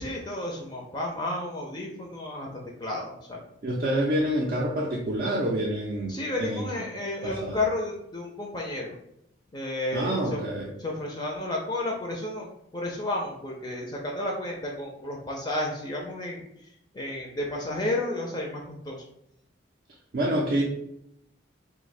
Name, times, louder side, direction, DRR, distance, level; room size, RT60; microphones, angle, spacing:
voice 1, 0.0-2.5 2.8-3.4 6.1-8.9 9.5-10.4 10.8-16.4 16.9-19.0, left 2 dB, 20° left, -1 dB, 0.4 m, -32 dB
voice 2, 3.6-6.7 7.2-7.7 9.9-10.7 20.1-20.6, right 1 dB, 50° right, -2 dB, 0.4 m, -27 dB
2.7 x 2.1 x 4.0 m, 0.77 s
head